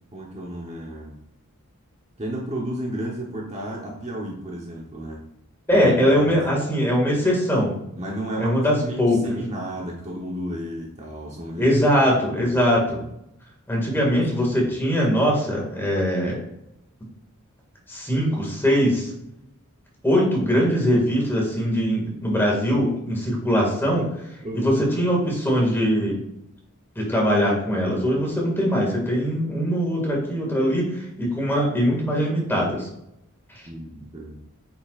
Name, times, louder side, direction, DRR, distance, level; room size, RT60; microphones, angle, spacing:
voice 1, 0.1-1.2 2.2-5.2 5.7-6.3 7.9-11.8 12.1-12.5 12.9-13.0 13.9-14.2 14.6-14.7 24.4-24.7 33.6-34.4, right 1 dB, 30° right, -2 dB, 1.0 m, -33 dB
voice 2, 5.7-7.8 8.4-9.4 11.6-13.0 13.7-16.4 17.9-19.1 20.0-24.1 24.5-26.2 27.0-32.9, equal, 10° left, -2 dB, 2.1 m, -21 dB
8.4 x 5.8 x 2.5 m, 0.81 s
head